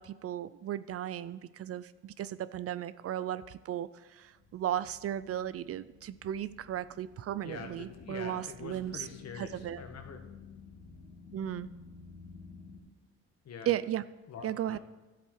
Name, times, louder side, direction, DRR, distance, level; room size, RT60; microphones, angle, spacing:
voice 1, 0.0-9.1 9.4-9.8 11.3-11.7 13.7-14.0 14.4-14.8, right 11 dB, 50° right, 17 dB, 0.4 m, -35 dB
sound 1, 4.3-12.8, left 5 dB, 80° left, 2.0 m, -53 dB
voice 2, 7.4-10.2 13.4-13.8 14.3-14.8, left 6 dB, 55° left, 5 dB, 1.4 m, -45 dB
11.0 x 8.0 x 4.7 m, 1.2 s
cardioid pair, 90°, 30 cm